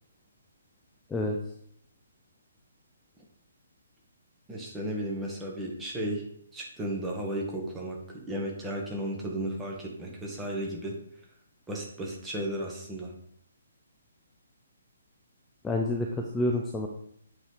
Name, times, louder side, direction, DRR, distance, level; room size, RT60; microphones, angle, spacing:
voice 1, 4.5-6.2 6.5-10.9 11.7-13.1, right 1 dB, 10° right, -2 dB, 1.2 m, -34 dB
voice 2, 15.6-16.9, left 1 dB, 10° left, 1 dB, 0.5 m, -28 dB
7.8 x 3.4 x 4.5 m, 0.68 s
figure-of-eight pair, 135°, 0 cm